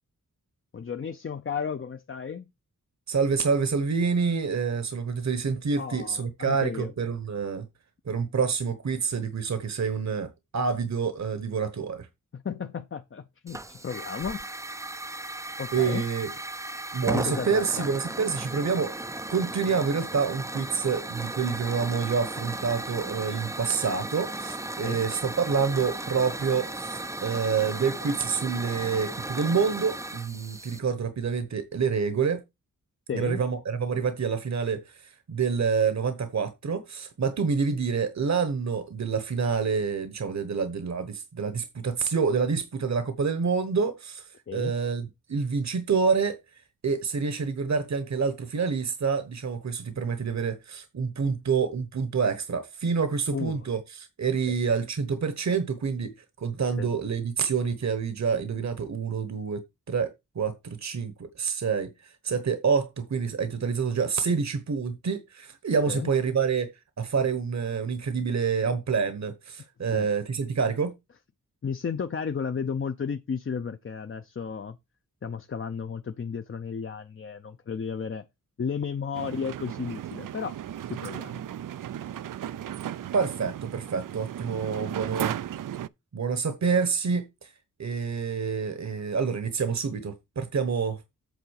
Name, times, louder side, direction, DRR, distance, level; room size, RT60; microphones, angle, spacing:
voice 1, 0.7-2.5 5.8-6.9 12.3-14.4 15.6-16.0 17.1-17.9 24.8-25.0 33.1-33.4 44.5-44.7 53.3-53.7 54.5-54.6 56.8-56.9 65.9-66.1 69.9-70.1 71.6-74.8 75.2-78.2 78.6-80.5 80.9-81.4, left 6 dB, 40° left, 0.6 m, -33 dB
voice 2, 3.1-7.7 8.1-12.1 15.7-16.3 16.9-32.4 33.1-46.4 46.8-59.6 59.9-66.7 67.0-70.9 83.1-85.4 86.1-87.5 87.8-91.0, right 5 dB, 55° right, 1.1 m, -27 dB
Hiss / Fire, 13.5-30.8, right 2 dB, 10° right, 0.4 m, -36 dB
sound 1, 79.1-85.9, right 11 dB, 80° right, 0.5 m, -35 dB
8.3 x 3.9 x 6.4 m
wide cardioid pair, 115°, 32 cm